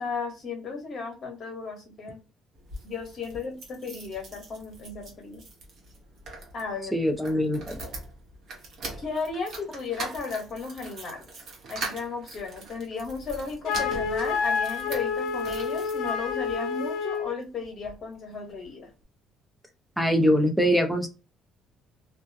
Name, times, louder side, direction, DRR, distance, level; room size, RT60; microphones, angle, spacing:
voice 1, 0.0-2.2 2.8-5.4 6.5-6.9 9.0-11.3 11.7-18.9, left 4 dB, 40° left, 2 dB, 0.9 m, -35 dB
sound 1, 2.5-16.6 17.1-18.0 18.3-18.4 18.6-18.7, right 3 dB, 45° right, 0.8 m, -42 dB
voice 2, 6.9-7.8 20.0-21.1, equal, ahead, 5 dB, 0.5 m, -23 dB
Wind instrument woodwind instrument, 13.6-17.4, left 5 dB, 65° left, 0.4 m, -28 dB
2.3 x 2.1 x 2.5 m, 0.30 s
cardioid pair, 160°, 0 cm